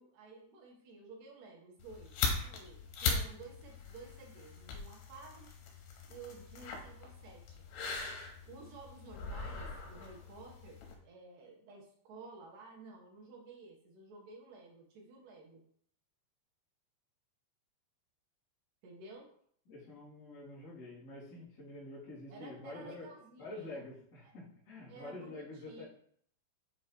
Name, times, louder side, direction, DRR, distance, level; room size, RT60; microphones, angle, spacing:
voice 1, 0.0-5.5 6.1-7.6 8.5-15.6 18.8-19.3 22.3-23.9 24.9-25.8, right 3 dB, 75° right, -1 dB, 2.1 m, -53 dB
sound 1, 1.8-11.0, left 4 dB, 85° left, 3.5 m, -40 dB
voice 2, 19.7-23.0 23.4-25.8, left 2 dB, 25° left, -10 dB, 2.5 m, -47 dB
8.2 x 4.7 x 3.0 m, 0.63 s
omnidirectional pair, 5.3 m